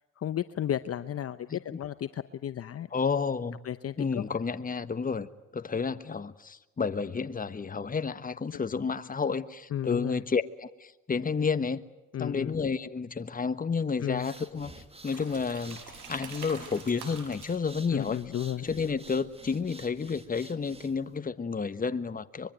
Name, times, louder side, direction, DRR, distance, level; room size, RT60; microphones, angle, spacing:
voice 1, 0.2-2.9 3.6-4.2 8.5-8.6 9.7-10.2 12.1-12.5 14.0-14.3 17.9-18.7, left 10 dB, 50° left, 13 dB, 0.8 m, -33 dB
voice 2, 2.9-3.6 4.0-11.8 12.2-14.7 15.0-15.8 16.1-18.2 18.6-22.5, left 5 dB, 30° left, 12 dB, 1.3 m, -31 dB
sound 1, 14.0-21.1, right 2 dB, 20° right, 2.1 m, -51 dB
sound 2, 15.0-19.7, right 5 dB, 80° right, 6.5 m, -48 dB
24.5 x 22.5 x 9.0 m, 1.0 s
cardioid pair, 90°, 30 cm